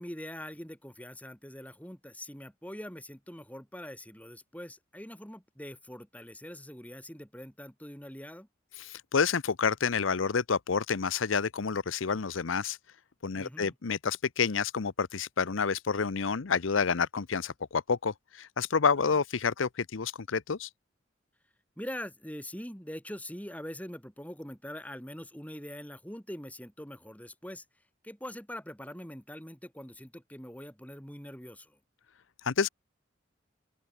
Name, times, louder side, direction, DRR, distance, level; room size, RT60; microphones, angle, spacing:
voice 1, 0.0-8.5 13.3-13.7 21.8-27.6 28.0-31.7, equal, 10° left, 6.5 m, -43 dB
voice 2, 8.7-12.8 13.2-20.7 32.4-32.7, left 5 dB, 85° left, 0.7 m, -29 dB
open air
head